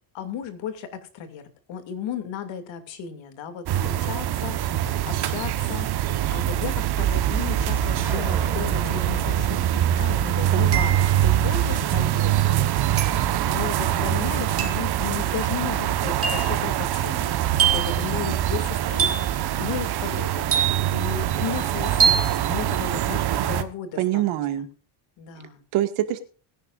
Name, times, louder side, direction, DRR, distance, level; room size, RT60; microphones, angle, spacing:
voice 1, 0.1-1.4 1.7-9.6 9.9-20.5 20.9-24.2 24.5-24.6 25.2-25.6, left 8 dB, 60° left, 8 dB, 2.7 m, -35 dB
sound 1, 3.7-23.6, right 11 dB, 50° right, 1.3 m, -24 dB
sound 2, 8.0-10.8, right 3 dB, 5° right, 3.3 m, -41 dB
voice 2, 10.5-10.9 24.0-24.7 25.7-26.2, right 13 dB, 75° right, 8 dB, 2.1 m, -25 dB
sound 3, 10.7-11.3 13.0-13.3 14.6-14.9 16.2-16.6 17.6-18.0 19.0-19.4 20.5-21.0 22.0-22.3, right 8 dB, 25° right, 2.8 m, -24 dB
20.5 x 11.0 x 2.6 m, 0.37 s
cardioid pair, 150°, 50 cm